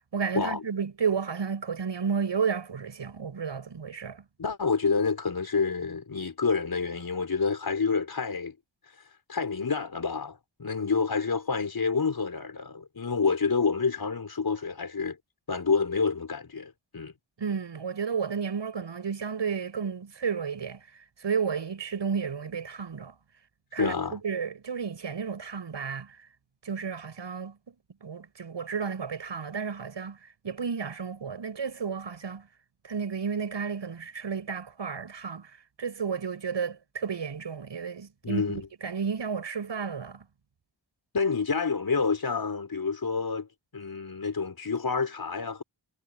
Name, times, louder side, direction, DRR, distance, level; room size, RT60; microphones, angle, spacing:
voice 1, 0.1-4.2 17.4-20.8 21.2-23.2 23.7-26.2 26.6-27.7 28.0-30.2 30.4-32.5 32.8-40.3, right 6 dB, 70° right, 7.4 m, -32 dB
voice 2, 4.4-8.5 9.3-15.2 15.5-17.1 23.8-24.2 38.2-38.7 41.1-43.5 43.7-45.6, left 5 dB, 50° left, 5.8 m, -28 dB
cardioid pair, 65°, 45 cm